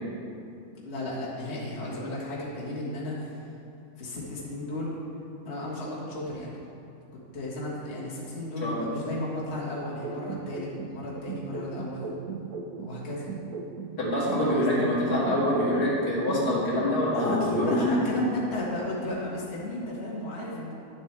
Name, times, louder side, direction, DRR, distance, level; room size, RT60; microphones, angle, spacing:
voice 1, 0.8-3.4 4.0-5.0 5.5-6.5 7.3-12.2 12.8-13.3 14.4-14.8 17.1-20.7, left 1 dB, 45° left, -7 dB, 1.8 m, -33 dB
voice 2, 8.6-8.9 14.0-17.8, left 1 dB, 85° left, -8 dB, 2.7 m, -25 dB
sound 1, 10.0-13.0 13.3-17.0 17.3-18.0, right 5 dB, 70° right, 1.1 m, -37 dB
10.5 x 7.5 x 3.3 m, 2.6 s
omnidirectional pair, 1.7 m